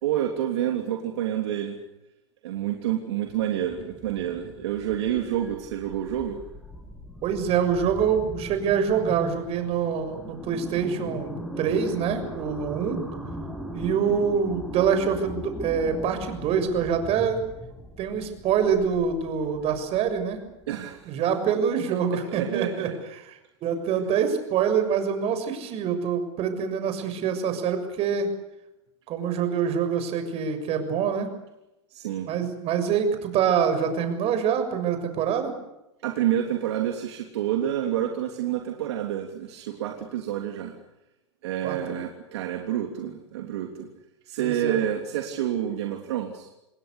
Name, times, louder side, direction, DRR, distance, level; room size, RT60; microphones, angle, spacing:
voice 1, 0.0-1.8 2.4-6.4 20.7-21.4 22.3-23.0 31.9-32.4 36.0-40.7 41.4-43.9 44.3-46.5, right 11 dB, 70° right, 3 dB, 3.3 m, -28 dB
sound 1, 3.3-21.0, equal, ahead, 7.3 m, -39 dB
voice 2, 7.2-13.0 13.7-17.4 18.0-20.4 21.0-22.9 23.2-23.3 23.6-28.3 29.1-31.3 32.2-35.5 41.6-41.8 44.4-44.8, right 7 dB, 45° right, 8 dB, 6.7 m, -25 dB
28.0 x 20.0 x 8.4 m, 0.91 s
hypercardioid pair, 100°, 15 cm